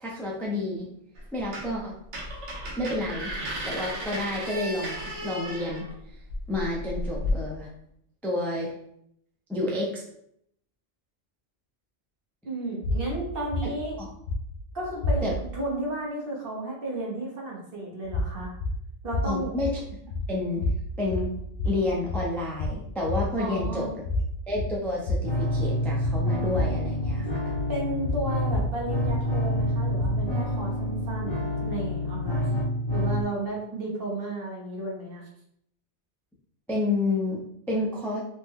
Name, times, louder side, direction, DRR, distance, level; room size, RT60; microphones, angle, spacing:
voice 1, 0.0-0.9 1.3-2.0 2.8-3.3 3.6-5.9 6.5-7.7 8.2-8.7 9.5-10.0 13.6-13.7 14.0-14.1 15.2-15.3 19.3-19.7 20.3-20.6 21.0-21.3 21.6-23.9 24.5-27.5 36.7-38.2, left 2 dB, 5° left, -3 dB, 0.3 m, -30 dB
sound 1, 1.2-1.8 2.1-7.3, equal, 80° right, 1.1 m, -34 dB
voice 2, 12.4-14.0 14.7-18.5 19.0-19.5 23.4-23.9 27.7-32.6 32.9-35.3, right 2 dB, 55° right, -2 dB, 1.1 m, -33 dB
sound 2, 12.8-15.6 18.0-30.4, left 1 dB, 75° left, 0.8 m, -31 dB
sound 3, 25.2-33.2, left 1 dB, 40° left, 0.9 m, -28 dB
3.2 x 2.1 x 3.5 m, 0.71 s
omnidirectional pair, 1.2 m